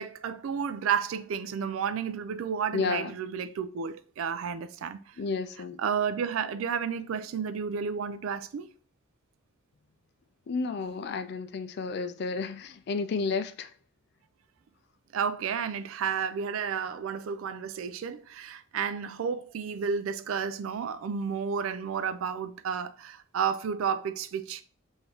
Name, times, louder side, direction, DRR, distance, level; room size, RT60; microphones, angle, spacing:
voice 1, 0.0-5.2 5.8-8.7 15.1-24.6, right 7 dB, 90° right, 0.4 m, -31 dB
voice 2, 2.7-3.1 5.2-5.8 10.5-13.7, left 4 dB, 55° left, 0.3 m, -31 dB
3.8 x 2.6 x 4.4 m
head